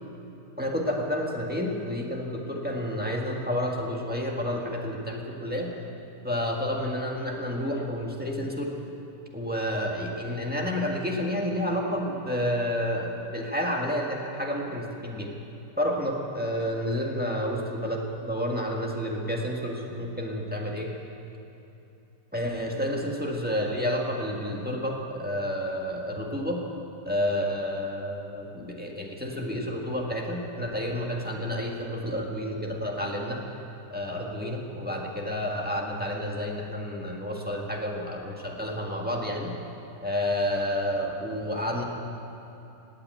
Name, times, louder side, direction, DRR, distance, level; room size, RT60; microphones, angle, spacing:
voice 1, 0.6-5.7 6.2-8.7 9.3-15.3 15.8-20.9 22.3-26.6 27.0-33.4 33.9-39.5 40.0-41.8, equal, 5° right, -1 dB, 1.5 m, -30 dB
17.0 x 8.9 x 9.1 m, 2.8 s
omnidirectional pair, 1.7 m